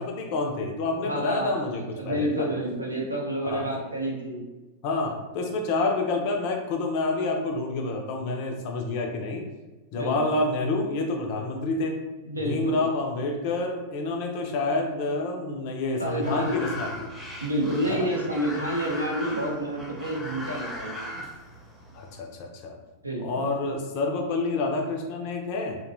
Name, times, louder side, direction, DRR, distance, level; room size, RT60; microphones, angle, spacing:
voice 1, 0.0-2.5 3.4-3.7 4.8-9.5 9.9-12.0 12.4-17.1 17.9-18.1 21.9-22.8 23.2-25.8, left 3 dB, 45° left, 2 dB, 0.4 m, -28 dB
voice 2, 1.0-4.5 9.9-10.4 12.2-12.8 16.0-16.6 17.4-21.3 23.0-23.5, right 1 dB, 85° right, -2 dB, 0.5 m, -29 dB
sound 1, 16.0-22.2, left 1 dB, 10° right, 0.6 m, -38 dB
2.8 x 2.2 x 2.5 m, 1.2 s
figure-of-eight pair, 90°, 0 cm